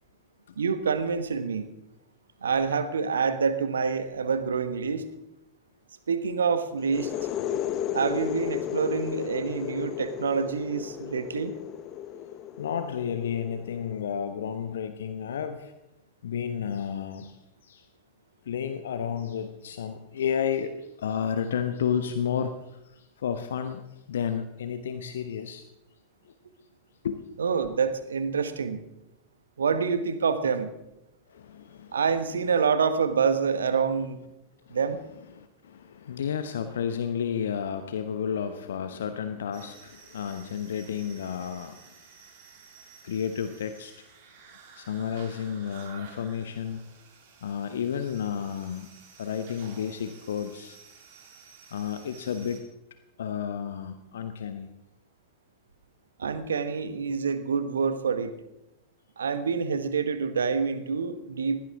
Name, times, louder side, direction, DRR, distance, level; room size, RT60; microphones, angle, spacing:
voice 1, 0.6-1.7 2.4-5.1 6.1-7.1 7.9-11.5 27.4-28.8 29.6-30.7 31.9-34.2 34.7-35.0 56.2-58.3 59.2-61.6, right 5 dB, 70° right, 12 dB, 1.3 m, -27 dB
sound 1, 6.8-14.3, left 10 dB, 35° left, 1.1 m, -34 dB
voice 2, 12.6-15.7 16.2-17.4 17.6-17.9 18.4-25.7 26.2-26.3 27.0-27.2 31.3-32.0 34.7-34.8 35.3-41.8 43.0-43.9 44.7-46.8 47.4-48.9 49.2-50.8 51.7-52.6 53.2-54.7, left 8 dB, 65° left, 9 dB, 1.0 m, -32 dB
sound 2, 39.5-52.6, right 6 dB, 50° right, 3.5 m, -52 dB
20.0 x 16.5 x 3.7 m, 0.90 s
figure-of-eight pair, 90°, 0 cm